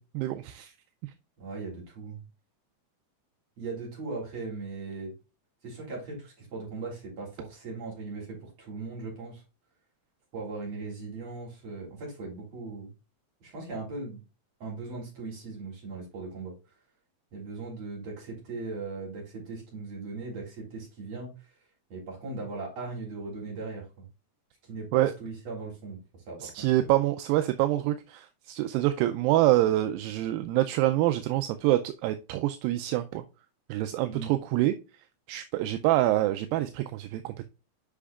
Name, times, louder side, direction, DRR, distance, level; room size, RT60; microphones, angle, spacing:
voice 1, 0.1-0.7 24.9-25.1 26.4-33.2 33.7-34.7 35.3-37.5, right 15 dB, 85° right, 2.3 m, -26 dB
voice 2, 1.4-2.2 3.6-5.1 5.6-9.4 10.3-12.9 13.4-14.2 14.6-16.5 17.3-21.5 21.9-24.0 24.7-26.0 26.3-26.9 34.1-34.3, right 3 dB, 45° right, 4.6 m, -38 dB
8.4 x 5.4 x 2.4 m
omnidirectional pair, 4.2 m